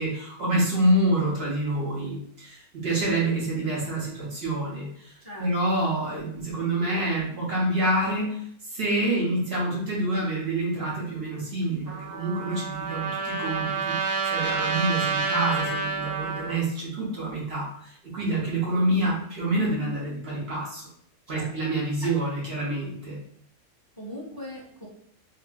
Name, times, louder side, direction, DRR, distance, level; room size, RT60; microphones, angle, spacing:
voice 1, 0.0-8.3 8.6-20.9 21.3-23.2, right 1 dB, 50° right, -5 dB, 0.9 m, -27 dB
voice 2, 5.2-5.8 21.3-21.5 22.0-22.1 24.0-24.9, equal, 20° left, -6 dB, 0.6 m, -40 dB
Trumpet, 11.8-16.5, right 5 dB, 70° right, 0.3 m, -29 dB
3.0 x 2.8 x 2.2 m, 0.66 s
omnidirectional pair, 1.6 m